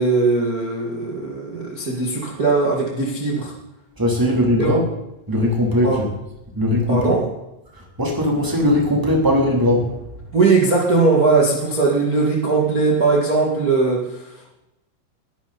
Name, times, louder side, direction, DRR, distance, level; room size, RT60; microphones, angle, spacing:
voice 1, 0.0-3.5 4.6-4.7 5.8-6.0 6.9-7.2 10.3-14.3, right 3 dB, 50° right, -2 dB, 1.0 m, -19 dB
voice 2, 4.0-4.8 5.3-6.0 6.5-7.2 7.7-9.9, left 1 dB, 5° right, -1 dB, 2.2 m, -19 dB
20.5 x 11.5 x 4.3 m, 0.92 s
omnidirectional pair, 5.9 m